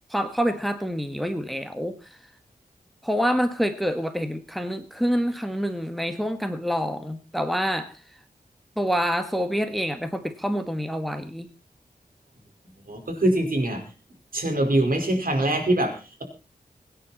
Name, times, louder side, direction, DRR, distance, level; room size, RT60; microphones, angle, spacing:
voice 1, 0.1-2.2 3.0-7.9 8.8-11.5, equal, ahead, 8 dB, 1.7 m, -27 dB
voice 2, 12.8-13.8 14.3-16.2, right 1 dB, 60° right, 4 dB, 4.9 m, -23 dB
23.5 x 9.9 x 4.3 m, 0.34 s
wide cardioid pair, 75°, 16 cm